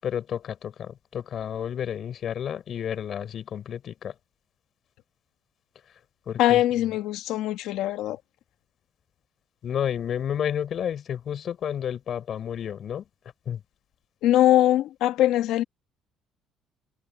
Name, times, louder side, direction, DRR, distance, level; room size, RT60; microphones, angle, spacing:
voice 1, 0.0-4.1 6.3-6.9 9.6-13.0 13.5-13.6, left 9 dB, 45° left, 5.4 m, -31 dB
voice 2, 6.4-8.2 14.2-15.6, left 13 dB, 75° left, 1.7 m, -22 dB
cardioid pair, 135°, 0 cm